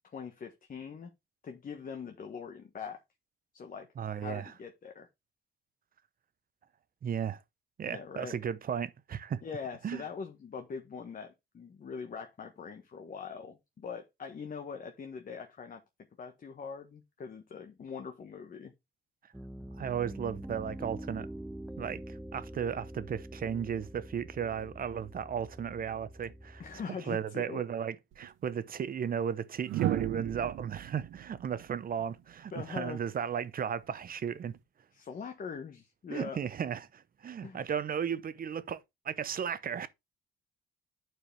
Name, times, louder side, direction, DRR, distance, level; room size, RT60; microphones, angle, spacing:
voice 1, 0.1-1.1 1.4-3.0 3.5-3.9 4.2-5.1 7.8-8.4 9.4-15.8 16.2-18.7 26.6-27.6 32.5-33.0 34.9-36.4 37.4-37.6, left 6 dB, 45° left, 1.4 m, -42 dB
voice 2, 4.0-4.5 7.0-7.4 7.8-9.4 9.8-10.0 19.8-21.3 21.8-26.6 27.1-34.5 36.1-38.8 39.0-39.9, right 8 dB, 45° right, 0.8 m, -35 dB
Piano, 19.3-26.8, right 1 dB, 5° right, 0.5 m, -45 dB
sound 1, 28.1-28.3 29.6-32.7 34.3-34.6, right 13 dB, 85° right, 0.8 m, -35 dB
10.0 x 4.7 x 3.4 m
cardioid pair, 90°, 20 cm